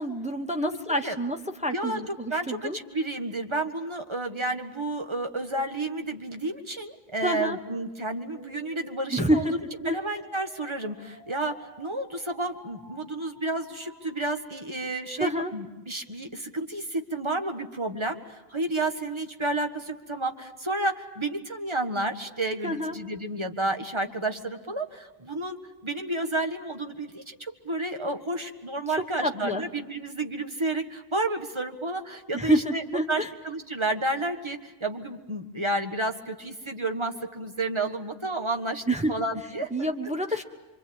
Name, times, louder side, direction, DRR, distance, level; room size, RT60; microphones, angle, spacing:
voice 1, 0.0-1.4 1.6-2.8 7.2-7.6 9.1-9.5 9.9-10.0 15.2-15.5 22.6-23.0 28.9-29.6 32.3-33.3 38.9-39.1 39.7-40.4, equal, 5° right, 4 dB, 1.2 m, -27 dB
voice 2, 1.7-9.5 9.8-32.8 33.1-38.8 39.1-39.9 40.3-40.4, right 2 dB, 30° right, 6 dB, 1.7 m, -31 dB
sound 1, 7.5-14.5, equal, 50° right, 7.5 m, -53 dB
26.0 x 24.5 x 8.9 m, 1.1 s
omnidirectional pair, 1.0 m